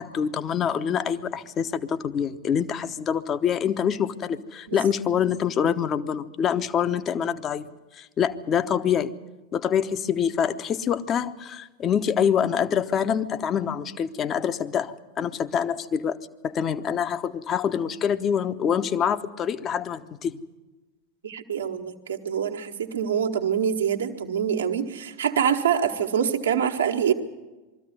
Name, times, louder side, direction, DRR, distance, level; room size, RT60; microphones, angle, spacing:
voice 1, 0.0-7.7 8.0-9.1 9.5-16.2 16.4-20.4, left 8 dB, 30° left, 12 dB, 1.0 m, -25 dB
voice 2, 21.2-27.1, right 8 dB, 65° right, 5 dB, 1.5 m, -25 dB
22.0 x 14.0 x 9.5 m, 1.2 s
figure-of-eight pair, 90°, 0 cm